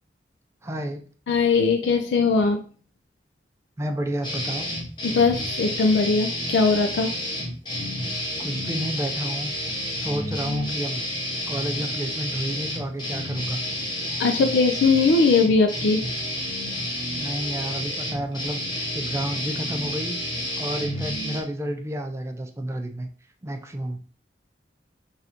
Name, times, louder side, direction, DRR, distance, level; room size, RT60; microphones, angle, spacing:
voice 1, 0.6-1.0 3.8-4.7 8.4-9.5 10.0-11.0 11.5-13.6 17.2-20.2 20.6-23.1 23.4-24.0, right 1 dB, 15° right, 5 dB, 0.4 m, -31 dB
voice 2, 1.3-2.6 5.0-7.1 14.2-16.0, left 4 dB, 75° left, 4 dB, 0.4 m, -20 dB
sound 1, 4.2-21.4, left 1 dB, 25° left, 0.8 m, -30 dB
3.7 x 3.2 x 2.9 m, 0.42 s
head